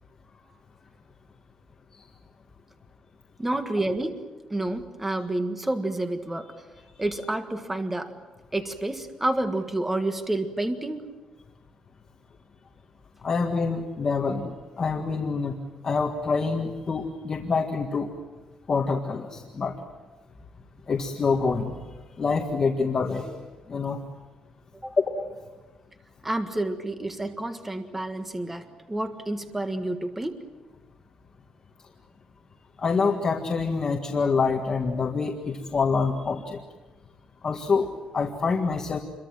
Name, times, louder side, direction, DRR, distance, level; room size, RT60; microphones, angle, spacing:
voice 1, 3.4-4.2 4.5-6.6 7.0-8.2 8.5-11.1 24.8-25.0 26.2-30.4, right 1 dB, 10° right, 6 dB, 1.5 m, -29 dB
voice 2, 13.2-15.5 15.8-18.1 18.7-19.7 20.9-21.8 22.2-23.3 23.7-24.0 25.1-25.2 32.8-36.6 37.4-37.9 38.1-39.0, left 4 dB, 30° left, 2 dB, 1.8 m, -26 dB
28.5 x 23.0 x 7.5 m, 1.3 s
cardioid pair, 150°, 2 cm